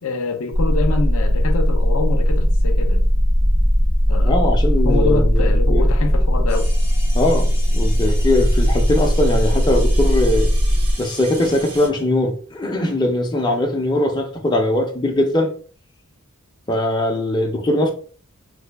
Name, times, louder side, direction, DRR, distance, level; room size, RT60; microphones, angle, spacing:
voice 1, 0.0-3.0 4.1-4.5 4.8-6.7, left 4 dB, 70° left, 0.5 m, -25 dB
sound 1, 0.5-10.9, equal, 55° right, 0.6 m, -17 dB
voice 2, 4.2-5.9 7.1-10.5 11.0-15.5 16.7-17.9, left 1 dB, 20° left, 0.5 m, -20 dB
sound 2, 6.5-11.9, right 1 dB, 90° right, 1.2 m, -37 dB
3.2 x 2.2 x 3.3 m
head